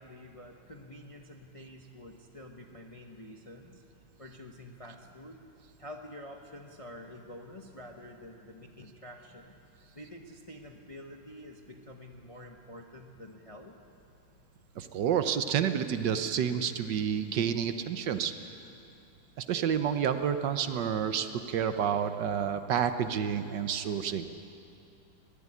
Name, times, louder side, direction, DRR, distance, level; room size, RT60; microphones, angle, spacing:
voice 1, 0.0-3.8 4.2-5.4 5.8-9.6 9.9-13.8, left 1 dB, 25° left, 3 dB, 0.7 m, -48 dB
voice 2, 14.8-18.3 19.4-24.3, right 8 dB, 70° right, 9 dB, 1.4 m, -29 dB
19.5 x 13.5 x 9.9 m, 2.6 s
omnidirectional pair, 2.1 m